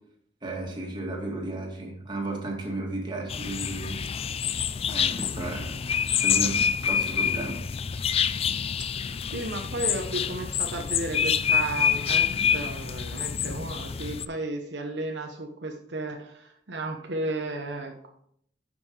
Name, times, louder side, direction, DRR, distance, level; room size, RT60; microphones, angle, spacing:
voice 1, 0.4-4.0 4.9-5.8 6.1-7.6, right 2 dB, 25° right, -1 dB, 2.1 m, -34 dB
sound 1, 3.3-14.3, left 7 dB, 35° left, 0.3 m, -27 dB
voice 2, 9.3-18.1, right 2 dB, 70° right, 2 dB, 0.9 m, -34 dB
9.9 x 5.5 x 4.8 m, 0.69 s
head